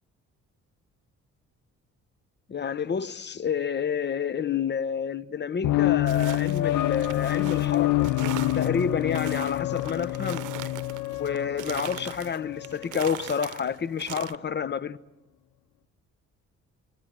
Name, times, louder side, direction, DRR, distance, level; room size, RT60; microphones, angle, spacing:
voice 1, 2.5-8.1 8.5-10.5 11.2-15.0, left 7 dB, 35° left, 0.9 m, -29 dB
sound 1, 5.6-13.0, left 16 dB, 80° left, 0.7 m, -27 dB
sound 2, 6.0-14.4, right 16 dB, 85° right, 0.8 m, -41 dB
28.0 x 20.0 x 7.6 m
cardioid pair, 90°, 30 cm